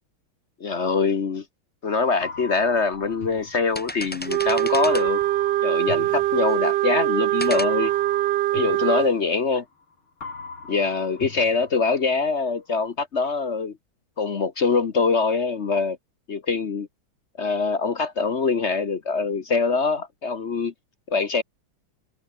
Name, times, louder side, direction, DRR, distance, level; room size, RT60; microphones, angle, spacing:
voice 1, 0.6-1.4 1.8-5.2 5.6-7.9 8.5-9.6 10.7-13.8 14.2-16.0 16.3-16.9 17.4-20.7 21.1-21.4, left 4 dB, 45° left, 1.1 m, -24 dB
sound 1, 2.1-2.2 2.8-3.2 3.5-5.3 6.0-6.7 7.4-7.7, equal, 5° left, 2.8 m, -35 dB
sound 2, 2.2-4.3 4.9-7.0 7.5-9.8 10.2-12.3, left 4 dB, 85° left, 4.9 m, -40 dB
Wind instrument woodwind instrument, 4.3-9.1, right 15 dB, 70° right, 1.2 m, -23 dB
omnidirectional pair, 2.3 m